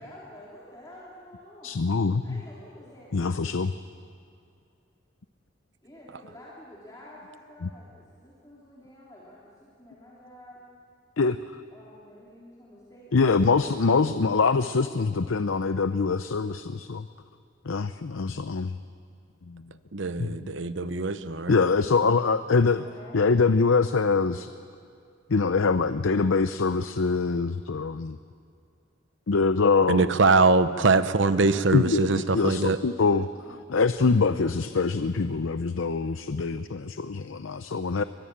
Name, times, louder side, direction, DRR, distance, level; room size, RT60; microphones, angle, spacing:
voice 1, 0.0-1.8 2.2-3.4 5.8-10.6 11.7-14.8 22.4-23.6 29.6-31.1 33.3-33.6, left 1 dB, 20° left, -6 dB, 3.3 m, -49 dB
voice 2, 1.6-2.4 3.1-3.7 7.6-7.7 11.2-11.6 13.1-17.1 17.6-18.8 19.5-19.6 20.2-20.9 21.5-22.8 23.1-24.5 25.3-28.2 29.3-30.1 31.7-33.3 33.7-38.0, left 4 dB, 85° left, 11 dB, 0.6 m, -24 dB
voice 3, 19.9-21.5 29.9-32.8, right 3 dB, 65° right, 12 dB, 0.9 m, -22 dB
24.0 x 20.5 x 8.7 m, 2.4 s
head